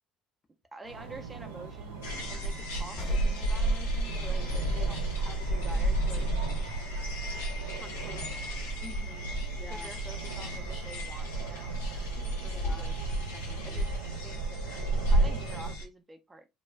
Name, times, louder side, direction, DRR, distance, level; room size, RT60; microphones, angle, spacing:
voice 1, 0.7-6.2 7.8-8.7 9.7-12.9 13.6-16.5, right 2 dB, 20° right, 0.4 m, -48 dB
sound 1, 0.8-15.8, right 4 dB, 80° right, 0.5 m, -40 dB
sound 2, 2.0-15.8, right 1 dB, 80° left, 0.6 m, -31 dB
sound 3, 3.0-9.0, left 3 dB, 50° left, 1.0 m, -53 dB
voice 2, 8.8-9.9 12.5-12.9 13.3-13.8, left 3 dB, 30° left, 0.5 m, -48 dB
2.2 x 2.0 x 3.2 m
hypercardioid pair, 60°, 0 cm